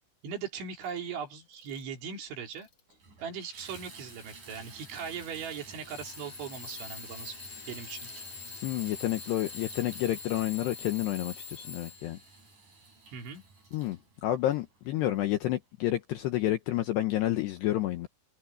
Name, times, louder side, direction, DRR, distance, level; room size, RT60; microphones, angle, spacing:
voice 1, 0.2-2.7 3.2-7.4 7.7-8.1 13.1-13.4, right 6 dB, 65° right, 5.9 m, -39 dB
Alarm / Clock, 0.8-1.0 1.5-2.0 2.5-2.9 3.8-3.9 5.9-12.3, left 5 dB, 55° left, 1.5 m, -44 dB
Water tap faucet / Bathtub (filling or washing), 2.3-2.4 2.9-15.3 16.0-16.1 16.6-16.7, right 3 dB, 35° right, 8.7 m, -51 dB
voice 2, 8.6-12.2 13.7-18.1, left 14 dB, 80° left, 2.6 m, -30 dB
omnidirectional pair, 6.0 m